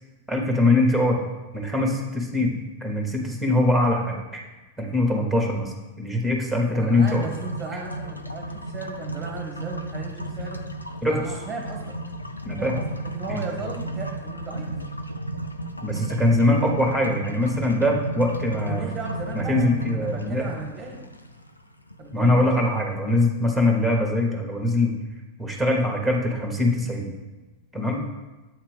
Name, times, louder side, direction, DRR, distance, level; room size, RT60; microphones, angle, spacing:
voice 1, 0.3-1.2 1.5-2.5 2.8-4.4 4.8-7.3 11.0-11.2 12.4-12.8 13.3-13.4 15.8-18.9 19.3-20.5 22.1-24.9 25.4-27.1 27.7-28.1, left 1 dB, ahead, 1 dB, 1.2 m, -22 dB
voice 2, 6.7-10.6 11.1-12.0 12.6-14.7 18.6-21.1 22.0-22.7, right 4 dB, 20° right, 0 dB, 1.0 m, -36 dB
sound 1, 6.9-22.8, right 1 dB, 85° left, 0.4 m, -34 dB
7.8 x 2.9 x 5.0 m, 1.2 s
figure-of-eight pair, 90°, 0 cm